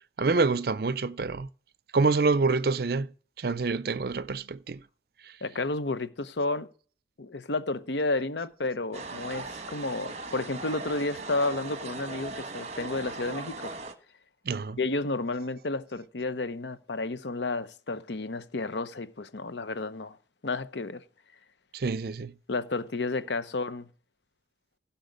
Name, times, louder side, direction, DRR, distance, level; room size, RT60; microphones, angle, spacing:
voice 1, 0.2-1.5 1.9-3.1 3.4-4.8 5.2-5.3 14.5-14.8 21.7-22.3, right 4 dB, 55° right, 0.5 m, -26 dB
voice 2, 5.4-6.7 7.2-13.7 14.8-20.2 20.4-21.0 22.5-23.9, left 2 dB, 75° left, 0.8 m, -31 dB
sound 1, 8.9-13.9, right 3 dB, 35° right, 1.1 m, -39 dB
16.0 x 5.8 x 5.1 m
head